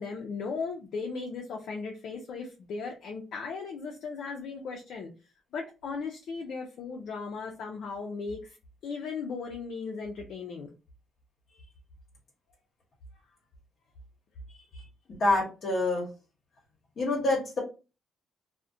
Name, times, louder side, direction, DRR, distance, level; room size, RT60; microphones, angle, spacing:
voice 1, 0.0-5.1 5.5-8.6 8.8-10.7, left 4 dB, 70° left, 1 dB, 0.4 m, -37 dB
voice 2, 15.1-16.0 17.0-17.6, left 2 dB, 55° left, -2 dB, 0.9 m, -27 dB
2.4 x 2.1 x 2.5 m, 0.31 s
cardioid pair, 90°, 0 cm